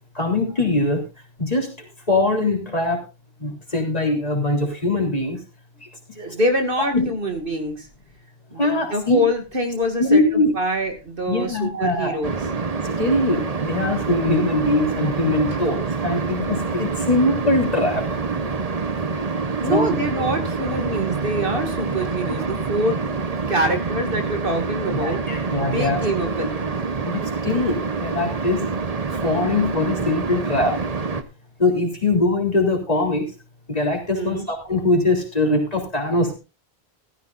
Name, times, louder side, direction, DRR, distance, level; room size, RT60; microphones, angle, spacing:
voice 1, 0.2-1.0 1.4-3.0 3.4-5.4 5.8-5.9 6.2-6.4 6.9-7.1 8.6-9.2 10.0-10.5 11.3-12.2 13.0-18.2 19.7-19.9 24.9-26.0 27.0-28.7 29.2-30.8 31.6-33.3 33.7-36.4, left 2 dB, 35° left, 1 dB, 3.7 m, -22 dB
voice 2, 6.2-7.9 8.5-12.4 19.6-23.0 23.5-26.7 34.1-34.5, equal, 55° right, 4 dB, 2.4 m, -25 dB
sound 1, 12.2-31.2, right 4 dB, 40° right, 1.0 m, -26 dB
15.5 x 14.0 x 2.6 m, 0.28 s
omnidirectional pair, 1.1 m